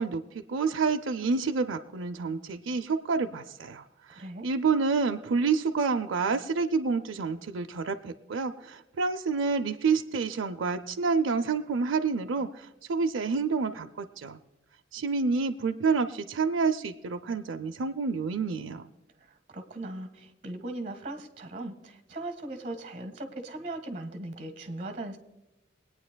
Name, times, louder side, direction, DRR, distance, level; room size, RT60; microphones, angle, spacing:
voice 1, 0.0-14.4 14.9-18.9, right 4 dB, 80° right, 6 dB, 0.5 m, -28 dB
voice 2, 4.1-4.5 19.2-25.2, right 2 dB, 40° right, 7 dB, 1.5 m, -39 dB
23.0 x 9.4 x 2.2 m, 0.98 s
head